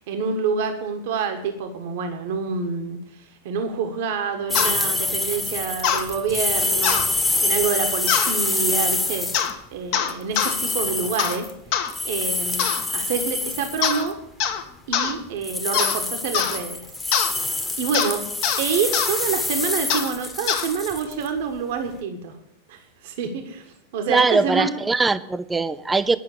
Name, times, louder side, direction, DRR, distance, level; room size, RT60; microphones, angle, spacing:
voice 1, 0.1-11.5 12.0-14.2 14.9-17.2 17.8-18.2 18.6-22.3 22.7-24.7, right 6 dB, 50° right, 6 dB, 1.4 m, -27 dB
sound 1, 4.5-4.7 5.8-6.0 6.8-7.1 8.1-8.3 9.3-9.6 9.9-10.5 11.2-11.4 11.7-11.9 12.6-12.8 13.8-14.1 14.4-14.6 14.9-15.1 15.7-16.0 16.3-16.6 17.1-17.3 17.9-18.1 18.4-18.6 18.9-19.1 19.9-20.1 20.5-20.7, left 8 dB, 45° left, 1.3 m, -23 dB
sound 2, 4.5-9.5 10.1-14.1 15.4-21.3, left 3 dB, 10° left, 1.3 m, -26 dB
voice 2, 24.1-26.2, right 3 dB, 10° right, 15 dB, 0.5 m, -21 dB
10.5 x 6.4 x 8.2 m, 0.74 s
figure-of-eight pair, 90°, 0 cm